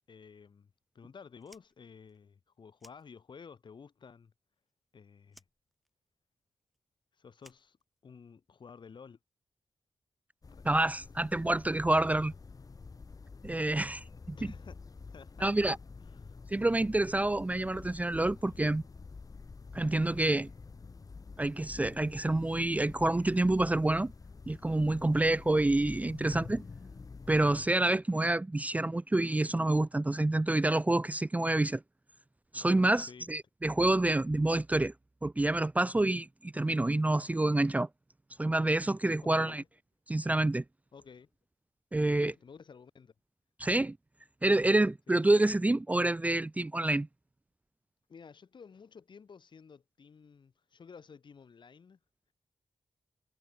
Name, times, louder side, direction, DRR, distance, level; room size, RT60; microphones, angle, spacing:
voice 1, 0.1-4.3 4.9-5.4 7.2-7.8 8.0-9.2 10.5-10.6 11.4-11.5 14.3-14.8 15.1-15.5 16.1-16.4 33.0-33.3 39.3-39.5 40.9-41.3 41.9-43.1 45.1-45.2 48.1-52.0, left 6 dB, 60° left, 4.4 m, -52 dB
Fire, 1.4-3.7 3.9-4.9 5.3-8.4, equal, ahead, 6.5 m, -63 dB
sound 1, 10.4-27.7, left 4 dB, 45° left, 1.8 m, -48 dB
voice 2, 10.6-12.3 13.4-14.5 15.4-15.8 16.5-18.8 19.7-20.5 21.4-24.1 24.5-26.6 27.3-31.8 32.5-34.9 35.2-37.9 38.4-39.6 40.1-40.6 41.9-42.3 43.6-44.0 44.4-47.1, right 2 dB, 15° right, 0.5 m, -28 dB
cardioid pair, 70°, 9 cm